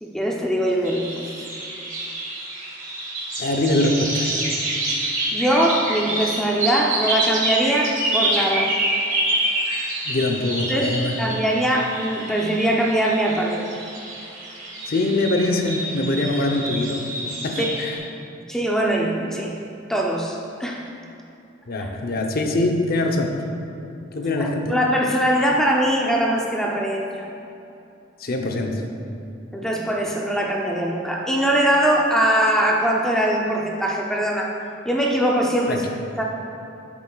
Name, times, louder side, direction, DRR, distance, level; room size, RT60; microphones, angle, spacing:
voice 1, 0.0-1.3 5.3-8.7 10.7-10.9 11.2-13.8 17.6-17.7 18.5-19.6 19.9-20.9 24.4-27.2 29.5-34.5 34.9-35.8 36.2-36.3, right 1 dB, 5° left, -1 dB, 0.5 m, -22 dB
sound 1, 0.8-18.0, right 1 dB, 45° right, 1.6 m, -27 dB
voice 2, 3.4-4.4 10.0-11.2 14.9-17.1 17.4-18.0 21.7-23.4 24.1-24.8 28.2-28.8 35.7-35.9, left 2 dB, 50° left, 3 dB, 0.7 m, -23 dB
12.0 x 7.1 x 2.4 m, 2.8 s
head